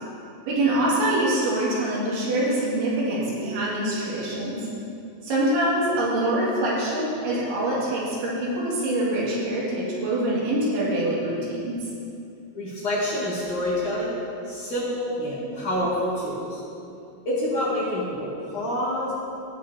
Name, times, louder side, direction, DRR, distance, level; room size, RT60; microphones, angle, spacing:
voice 1, 0.5-4.6 5.2-11.8, right 1 dB, 80° right, -6 dB, 4.5 m, -24 dB
voice 2, 12.5-14.1 14.5-16.6 17.3-19.1, left 1 dB, 50° left, -9 dB, 3.0 m, -27 dB
16.0 x 9.2 x 2.8 m, 2.6 s
omnidirectional pair, 5.3 m